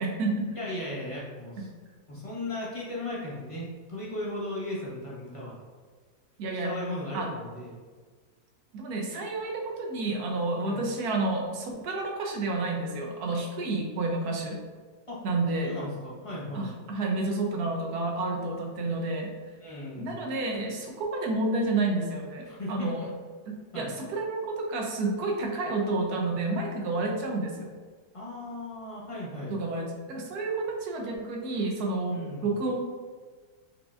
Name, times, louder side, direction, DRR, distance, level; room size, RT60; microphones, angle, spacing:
voice 1, 0.0-0.5 6.4-6.7 7.1-7.3 8.7-14.6 15.2-15.8 16.5-19.3 20.0-23.1 23.5-27.7 29.5-32.8, right 2 dB, 75° right, 1 dB, 1.2 m, -30 dB
voice 2, 0.5-1.7 2.1-5.6 6.6-7.8 10.6-10.8 15.1-15.2 15.6-16.7 19.6-20.2 22.5-23.1 23.7-23.9 28.1-29.6 32.1-32.5, left 1 dB, 25° left, -6 dB, 0.8 m, -36 dB
4.9 x 3.5 x 2.4 m, 1.5 s
omnidirectional pair, 1.7 m